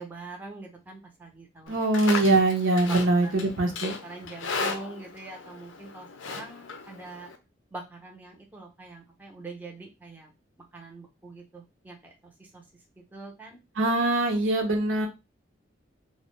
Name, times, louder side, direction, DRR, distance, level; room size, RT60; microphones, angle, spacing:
voice 1, 0.0-1.7 2.8-3.4 4.0-7.3 7.7-10.3 10.7-12.6 13.0-13.6 14.4-15.0, right 3 dB, 10° right, 0 dB, 0.5 m, -44 dB
Livestock farm animals working animals, 1.7-7.4, left 4 dB, 70° left, 0.5 m, -36 dB
voice 2, 1.7-4.0 13.8-15.1, right 2 dB, 80° right, 3 dB, 0.6 m, -23 dB
2.5 x 2.0 x 3.0 m, 0.25 s
head